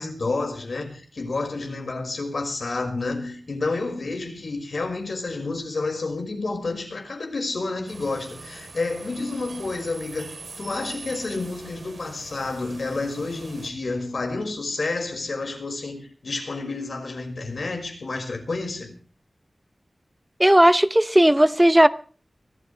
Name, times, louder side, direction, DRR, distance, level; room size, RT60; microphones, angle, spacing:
voice 1, 0.0-10.3 10.6-18.9, left 3 dB, 75° left, 5.6 m, -30 dB
sound 1, 7.9-13.7, right 3 dB, 80° right, 4.0 m, -42 dB
voice 2, 20.4-21.9, right 1 dB, 10° right, 0.7 m, -15 dB
24.5 x 13.5 x 3.4 m
wide cardioid pair, 70°, 0 cm